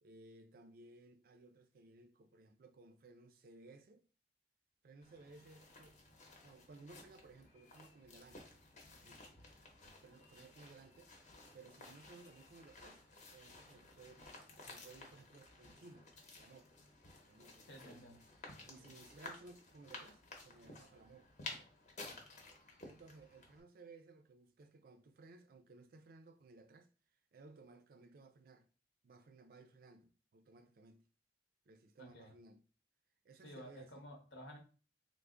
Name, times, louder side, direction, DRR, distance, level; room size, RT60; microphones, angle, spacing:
voice 1, 0.0-4.1 4.8-6.0 6.4-8.5 9.0-9.4 10.0-11.1 11.5-16.1 16.4-16.7 17.3-18.2 18.6-21.3 22.0-22.3 22.8-28.7 29.0-31.0 31.7-32.7 33.2-34.1, right 3 dB, 55° right, 0.4 m, -59 dB
sound 1, 5.0-23.6, left 3 dB, 40° left, 0.8 m, -55 dB
voice 2, 17.7-18.2 18.7-18.9 32.0-32.4 33.4-34.6, equal, 85° left, 0.9 m, -53 dB
3.3 x 2.0 x 3.6 m
head